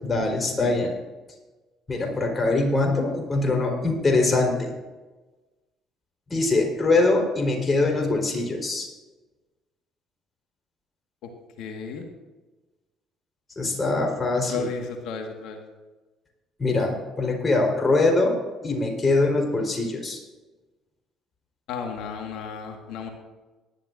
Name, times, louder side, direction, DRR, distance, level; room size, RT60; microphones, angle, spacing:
voice 1, 0.0-0.9 1.9-4.7 6.3-8.9 13.6-14.7 16.6-18.4 18.6-20.2, left 2 dB, 30° left, 1 dB, 4.3 m, -23 dB
voice 2, 11.6-12.1 14.5-15.6 21.7-23.1, left 5 dB, 70° left, 3 dB, 1.7 m, -33 dB
19.0 x 12.0 x 2.7 m, 1.2 s
hypercardioid pair, 60°, 0 cm